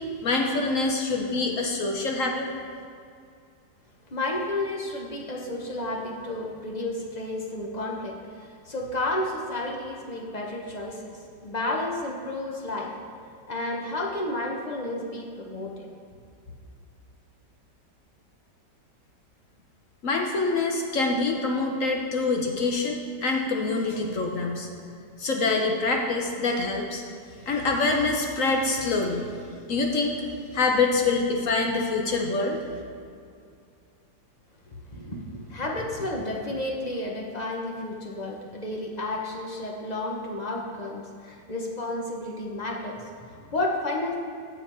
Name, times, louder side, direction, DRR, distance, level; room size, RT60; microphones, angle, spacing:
voice 1, 0.2-2.5 20.0-24.7 25.2-27.0 27.5-29.3 29.7-30.2 30.5-32.6, left 3 dB, 60° left, 2 dB, 1.0 m, -25 dB
voice 2, 4.1-11.1 11.4-12.9 13.2-15.9 34.9-44.2, left 2 dB, 35° left, -1 dB, 0.7 m, -31 dB
7.7 x 7.1 x 4.3 m, 2.4 s
omnidirectional pair, 1.9 m